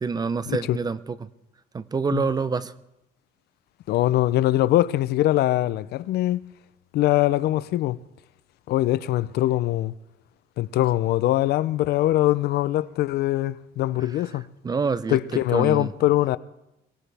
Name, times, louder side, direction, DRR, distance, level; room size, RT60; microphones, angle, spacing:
voice 1, 0.0-1.3 1.7-2.7 14.0-15.9, right 5 dB, 25° right, 0.6 m, -27 dB
voice 2, 3.9-6.4 6.9-8.0 8.7-9.9 10.6-14.5 15.1-16.4, left 15 dB, 70° left, 0.6 m, -22 dB
22.5 x 17.5 x 3.4 m
cardioid pair, 110°, 17 cm